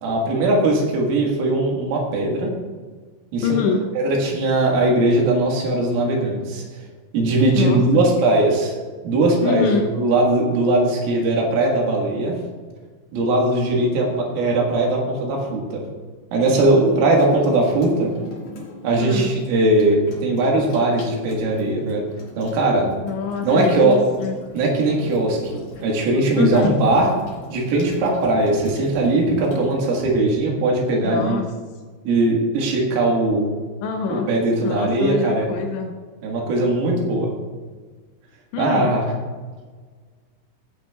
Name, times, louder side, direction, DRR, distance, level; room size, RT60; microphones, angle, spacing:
voice 1, 0.0-2.5 3.3-3.6 4.0-6.6 7.1-8.8 9.0-12.4 13.1-15.8 16.3-18.1 18.8-22.0 22.4-22.9 23.4-24.0 24.5-27.1 27.5-31.4 32.1-33.5 34.1-35.5 36.2-37.3 38.6-39.0, right 2 dB, 80° right, -1 dB, 4.2 m, -19 dB
voice 2, 3.4-3.9 7.6-8.1 9.4-9.9 19.0-19.3 23.0-24.4 26.4-26.8 31.0-31.5 33.8-34.3 34.6-36.0 38.5-38.9, left 6 dB, 80° left, 4 dB, 2.8 m, -25 dB
Water tap faucet / Sink (filling or washing), 16.3-30.1, left 1 dB, 55° left, 2.1 m, -40 dB
15.0 x 8.3 x 2.3 m, 1.5 s
omnidirectional pair, 5.8 m